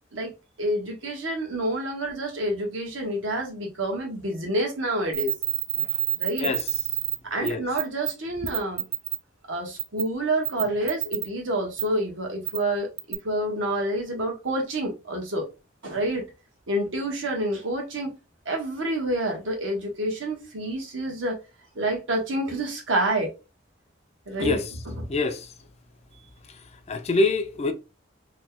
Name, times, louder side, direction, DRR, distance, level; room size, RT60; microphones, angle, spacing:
voice 1, 0.1-5.3 5.8-5.9 6.1-6.5 7.2-8.8 9.5-15.5 15.8-16.3 16.7-18.1 18.4-21.4 21.7-23.3 24.3-25.1, right 1 dB, 85° right, 1.2 m, -28 dB
sound 1, 5.1-7.2 7.5-7.6 7.8-8.1 8.5-9.2 9.8-10.0 10.4-11.3 11.8-11.9 12.5-12.6 13.0-13.1, right 17 dB, 40° right, 0.6 m, -27 dB
voice 2, 25.1-25.5 26.9-27.7, left 3 dB, 35° left, 0.4 m, -25 dB
3.0 x 2.2 x 3.6 m
head